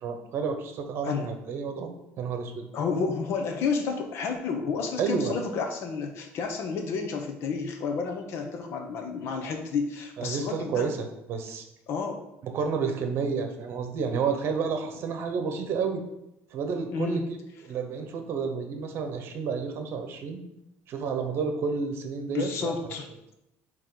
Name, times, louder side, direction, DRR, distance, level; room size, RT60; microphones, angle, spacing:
voice 1, 0.0-1.9 2.2-2.7 5.0-5.3 10.2-11.6 12.4-16.0 16.5-17.2 17.6-20.4 20.9-22.7, right 5 dB, 55° right, 6 dB, 1.0 m, -30 dB
voice 2, 2.7-10.9 11.9-12.2 16.9-17.2 17.7-17.8 22.3-23.1, left 5 dB, 60° left, 5 dB, 0.9 m, -30 dB
9.1 x 3.1 x 3.9 m, 0.88 s
cardioid pair, 145°, 5 cm